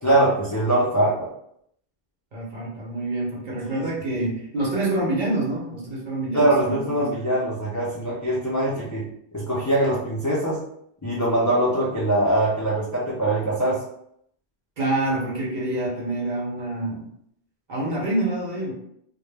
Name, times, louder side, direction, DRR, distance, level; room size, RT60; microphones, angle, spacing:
voice 1, 0.0-1.3 3.7-3.9 4.1-4.3 6.3-10.6 11.0-13.8, right 1 dB, 30° left, -6 dB, 0.3 m, -22 dB
voice 2, 2.3-7.0 14.8-17.1 17.7-18.7, right 2 dB, 50° right, -4 dB, 0.8 m, -27 dB
2.2 x 2.0 x 3.2 m, 0.71 s
omnidirectional pair, 1.1 m